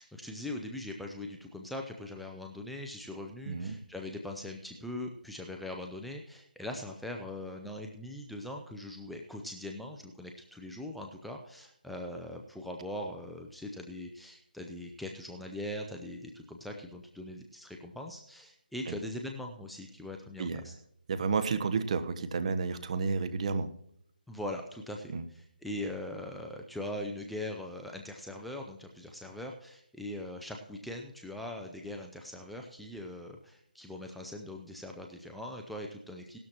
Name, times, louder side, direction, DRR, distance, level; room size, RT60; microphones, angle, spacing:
voice 1, 0.0-20.7 24.3-36.4, left 1 dB, ahead, 1 dB, 0.6 m, -41 dB
voice 2, 3.5-3.8 18.9-19.0 20.4-20.7 21.1-23.7 25.1-25.2, right 5 dB, 45° right, 10 dB, 1.1 m, -31 dB
17.5 x 12.5 x 3.0 m, 0.73 s
figure-of-eight pair, 160°, 5 cm